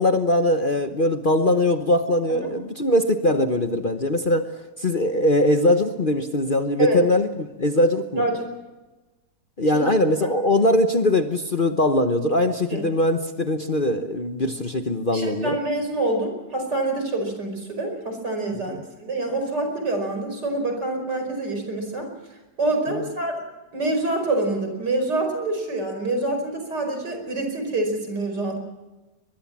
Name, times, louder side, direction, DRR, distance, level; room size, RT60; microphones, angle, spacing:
voice 1, 0.0-4.5 4.8-8.2 9.6-15.6 22.9-23.1, left 1 dB, 35° left, 7 dB, 1.1 m, -21 dB
voice 2, 15.1-22.1 22.6-23.4 23.7-28.6, right 2 dB, 75° right, 5 dB, 5.6 m, -26 dB
23.5 x 21.0 x 7.4 m, 1.1 s
omnidirectional pair, 1.9 m